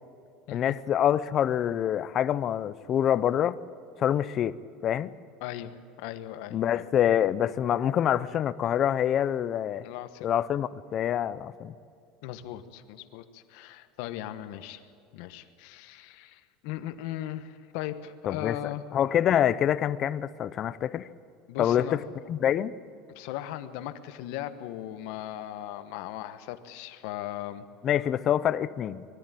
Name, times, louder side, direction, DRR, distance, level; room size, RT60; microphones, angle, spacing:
voice 1, 0.5-3.6 4.0-4.6 4.8-5.1 6.5-9.8 10.2-11.7 18.3-18.6 18.9-21.1 21.6-22.0 22.3-22.7 27.8-29.1, left 10 dB, 30° left, 15 dB, 0.5 m, -26 dB
voice 2, 5.4-6.8 9.8-10.3 12.2-14.8 15.1-18.8 21.5-22.0 23.1-27.7, left 12 dB, 60° left, 10 dB, 1.1 m, -38 dB
21.5 x 13.5 x 9.0 m, 2.5 s
cardioid pair, 180°, 0 cm